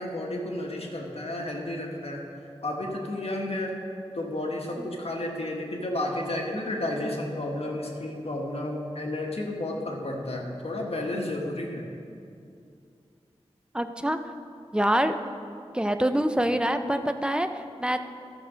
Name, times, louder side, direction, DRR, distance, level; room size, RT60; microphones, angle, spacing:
voice 1, 0.0-2.2 2.6-3.8 4.1-11.8, left 1 dB, 65° left, 0 dB, 1.5 m, -32 dB
voice 2, 13.7-14.2 14.7-15.3 15.7-18.0, right 1 dB, 10° right, 8 dB, 0.5 m, -25 dB
13.0 x 6.5 x 5.0 m, 2.5 s
wide cardioid pair, 75°, 11 cm